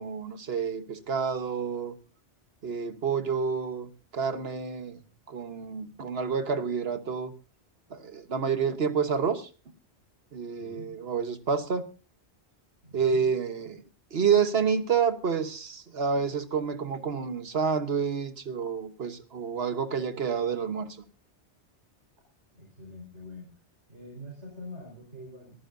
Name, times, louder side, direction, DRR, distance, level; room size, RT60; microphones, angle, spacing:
voice 1, 0.0-1.9 2.6-5.0 5.3-7.3 7.9-9.5 10.3-11.9 12.9-13.8 14.1-21.0, right 6 dB, 60° right, 1.4 m, -29 dB
voice 2, 10.6-10.9 12.8-13.2 22.5-23.5 23.9-25.5, left 1 dB, 80° right, 5.0 m, -44 dB
23.0 x 14.0 x 2.7 m
omnidirectional pair, 1.2 m